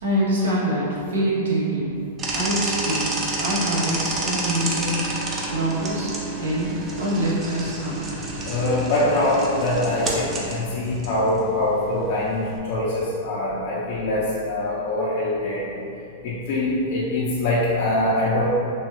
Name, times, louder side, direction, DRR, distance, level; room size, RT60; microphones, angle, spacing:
voice 1, 0.0-1.9 2.3-3.1 3.4-4.9 5.5-8.0, right 1 dB, 90° right, -7 dB, 0.9 m, -25 dB
sound 1, 2.2-12.6, right 2 dB, 20° right, 0.4 m, -29 dB
voice 2, 8.4-15.6 16.2-18.4, left 1 dB, 50° left, -8 dB, 0.5 m, -23 dB
3.0 x 2.3 x 2.9 m, 2.7 s
supercardioid pair, 145°, 0 cm